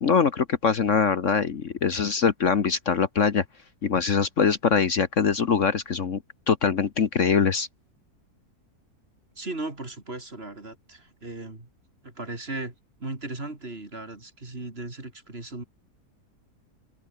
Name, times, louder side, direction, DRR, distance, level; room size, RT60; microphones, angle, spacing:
voice 1, 0.0-3.4 3.8-6.2 6.5-7.7, left 6 dB, 55° left, 1.5 m, -23 dB
voice 2, 9.4-11.7 12.0-12.7 13.0-15.6, right 2 dB, 40° right, 3.8 m, -37 dB
open air
omnidirectional pair, 1.7 m